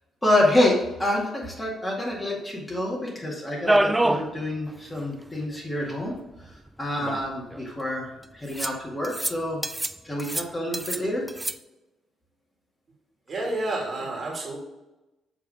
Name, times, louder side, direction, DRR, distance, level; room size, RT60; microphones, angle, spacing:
voice 1, 0.2-6.1 6.8-9.7 10.0-11.2, left 1 dB, 15° left, -3 dB, 2.1 m, -27 dB
sound 1, 3.7-4.3 4.7-4.8 5.0-5.1 6.1-6.2 7.0-7.6 8.5-8.8 9.0-9.3 9.6-9.9 10.2-11.0 11.3-11.5, right 1 dB, 10° right, 0.4 m, -25 dB
voice 2, 13.3-14.6, right 2 dB, 45° right, -2 dB, 2.4 m, -30 dB
7.0 x 3.8 x 4.9 m, 1.0 s
cardioid pair, 90°, 0 cm